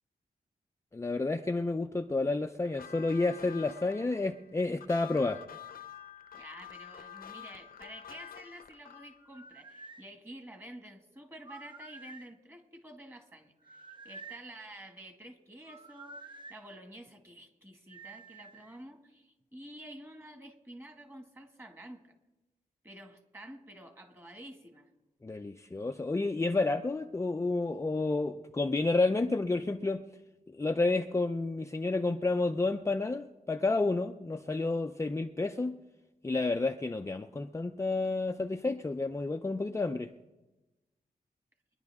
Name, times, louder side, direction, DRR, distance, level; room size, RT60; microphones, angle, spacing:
voice 1, 0.9-5.4 25.2-30.1 30.5-35.7 36.2-40.1, left 3 dB, 20° left, 5 dB, 0.5 m, -30 dB
sound 1, 2.6-9.2, left 9 dB, 70° left, 0.8 m, -48 dB
voice 2, 6.3-22.1 22.8-24.9, right 1 dB, 15° right, 4 dB, 2.0 m, -50 dB
sound 2, 9.2-10.1 11.4-12.3 13.6-14.5 15.6-16.6 17.9-18.8, right 3 dB, 30° right, 0.8 m, -50 dB
23.5 x 11.0 x 3.6 m, 1.0 s
wide cardioid pair, 110°, 16 cm